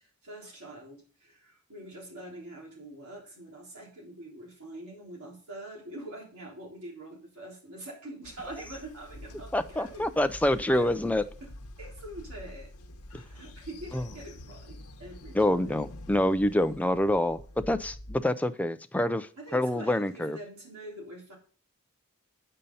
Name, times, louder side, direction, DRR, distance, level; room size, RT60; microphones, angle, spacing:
voice 1, 0.0-10.2 10.5-10.9 11.4-11.5 11.8-12.7 13.1-15.9 19.3-21.4, right 1 dB, 75° right, -2 dB, 3.7 m, -45 dB
Train, 8.2-18.2, left 1 dB, 85° left, 1.0 m, -47 dB
voice 2, 9.5-11.3 13.9-14.0 15.3-20.4, left 1 dB, 5° left, 9 dB, 0.5 m, -26 dB
8.8 x 5.6 x 5.4 m, 0.41 s
head